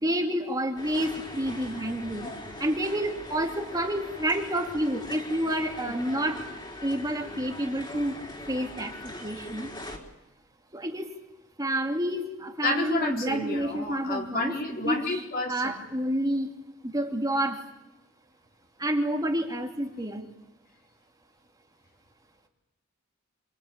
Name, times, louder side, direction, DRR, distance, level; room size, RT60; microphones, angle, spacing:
voice 1, 0.0-2.3 2.6-6.4 6.8-8.1 8.5-8.9 9.2-9.7 10.7-11.1 11.6-14.5 14.8-15.2 15.5-16.5 16.8-17.6 18.8-20.3, right 1 dB, 20° right, 2 dB, 2.6 m, -29 dB
sound 1, 0.8-10.0, left 1 dB, 20° left, 4.4 m, -41 dB
voice 2, 12.6-15.8, left 2 dB, 45° left, 1 dB, 4.3 m, -30 dB
28.0 x 24.0 x 8.9 m, 0.92 s
head